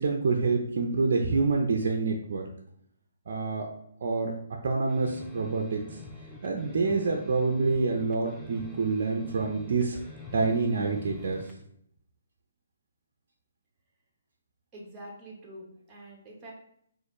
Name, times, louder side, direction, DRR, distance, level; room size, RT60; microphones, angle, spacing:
voice 1, 0.0-2.5 3.3-3.7 4.0-6.0 6.4-10.0 10.3-11.5, right 4 dB, 60° right, 2 dB, 0.4 m, -27 dB
sound 1, 4.9-11.6, left 3 dB, ahead, 0.5 m, -46 dB
voice 2, 14.7-16.5, right 1 dB, 15° right, -2 dB, 1.0 m, -46 dB
4.1 x 2.5 x 3.0 m, 0.70 s
hypercardioid pair, 145°, 0 cm